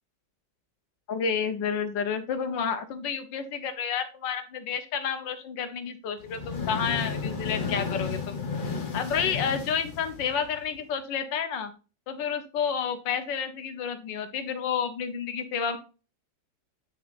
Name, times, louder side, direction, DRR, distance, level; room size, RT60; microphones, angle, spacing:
voice 1, 1.1-8.4 8.9-11.7 12.1-15.8, left 7 dB, 90° left, 9 dB, 1.7 m, -30 dB
sound 1, 6.2-10.8, left 5 dB, 35° left, 1.0 m, -33 dB
9.3 x 6.5 x 2.5 m, 0.32 s
omnidirectional pair, 1.9 m